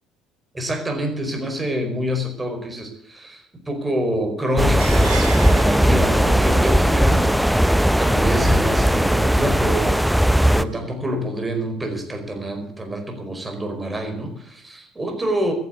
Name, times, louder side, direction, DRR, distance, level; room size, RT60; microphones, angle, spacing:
voice 1, 0.5-7.5 8.0-15.5, equal, 20° right, 4 dB, 4.7 m, -27 dB
sound 1, 4.6-10.6, equal, ahead, 0.5 m, -17 dB
sound 2, 4.8-10.8, right 7 dB, 90° right, 1.5 m, -38 dB
14.0 x 9.3 x 8.1 m, 0.69 s
hypercardioid pair, 60°, 0 cm